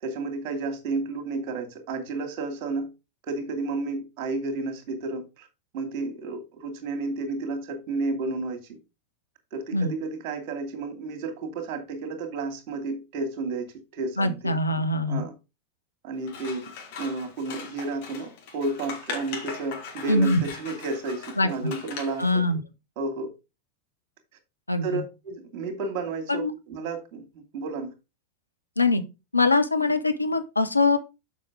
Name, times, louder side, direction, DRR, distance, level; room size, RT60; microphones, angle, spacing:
voice 1, 0.0-2.9 3.2-5.5 5.7-8.8 9.5-13.7 13.9-15.3 16.0-16.7 17.0-22.4 23.0-23.3 24.8-27.9, right 3 dB, 40° right, 2.5 m, -32 dB
voice 2, 14.2-15.3 20.1-20.4 21.4-21.7 22.2-22.6 24.7-25.0 26.3-26.6 28.8-29.0 29.3-31.0, left 2 dB, 85° left, 1.1 m, -23 dB
Scissors, 16.2-22.3, left 5 dB, 45° left, 3.2 m, -39 dB
7.5 x 5.5 x 4.9 m
figure-of-eight pair, 90°, 0 cm